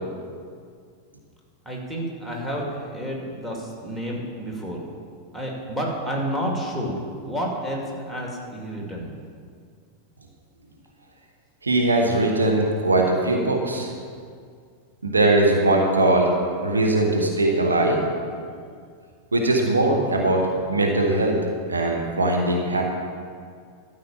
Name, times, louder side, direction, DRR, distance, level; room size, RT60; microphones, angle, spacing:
voice 1, 1.7-4.9 5.3-6.9 7.2-9.1, equal, 5° right, -2 dB, 2.4 m, -30 dB
voice 2, 11.6-13.9 15.0-16.3 16.6-18.0 19.3-21.4 21.7-22.9, right 2 dB, 75° right, 1 dB, 1.4 m, -20 dB
13.5 x 5.6 x 7.2 m, 2.1 s
figure-of-eight pair, 90°, 0 cm